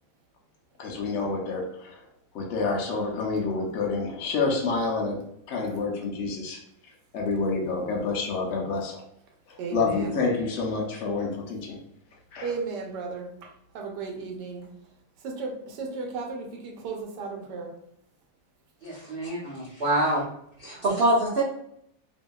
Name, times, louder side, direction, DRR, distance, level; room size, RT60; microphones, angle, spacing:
voice 1, 0.8-2.0 2.3-6.6 7.1-9.0 9.5-11.8 12.3-12.5, left 4 dB, 70° left, 0 dB, 0.6 m, -28 dB
voice 2, 9.6-10.2 12.4-14.7 15.2-17.7, right 4 dB, 80° right, 2 dB, 1.2 m, -35 dB
voice 3, 18.8-20.2 20.6-21.4, right 1 dB, 50° right, -8 dB, 0.6 m, -25 dB
2.7 x 2.7 x 2.2 m, 0.72 s
omnidirectional pair, 1.9 m